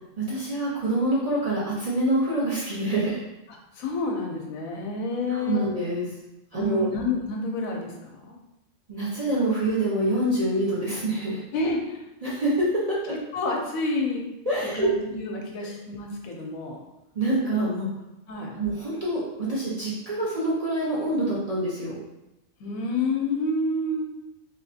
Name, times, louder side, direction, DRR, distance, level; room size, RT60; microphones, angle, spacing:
voice 1, 0.2-3.2 5.3-6.1 6.5-6.9 8.9-11.4 12.2-13.1 14.5-14.9 15.6-15.7 17.1-17.9 18.5-22.0, right 1 dB, 35° right, -7 dB, 0.6 m, -26 dB
voice 2, 3.7-5.7 6.5-8.4 11.5-12.0 13.3-14.3 14.7-16.8 18.3-18.6 22.6-24.0, left 2 dB, 85° left, 0 dB, 1.1 m, -29 dB
3.1 x 3.0 x 2.7 m, 0.93 s
omnidirectional pair, 1.4 m